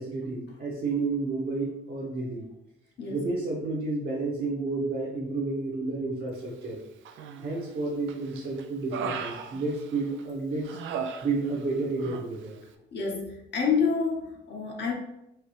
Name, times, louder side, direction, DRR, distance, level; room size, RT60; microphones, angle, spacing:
voice 1, 0.0-2.5 3.1-6.8 7.4-10.8 11.2-12.6, right 3 dB, 55° right, -5 dB, 1.3 m, -31 dB
Human voice, 7.1-7.7 8.1-10.2 10.6-11.7 12.0-12.3, right 6 dB, 75° right, 0.5 m, -37 dB
voice 2, 12.9-14.9, left 5 dB, 60° left, 0 dB, 1.1 m, -28 dB
4.7 x 2.9 x 3.2 m, 0.83 s
cardioid pair, 90°, 20 cm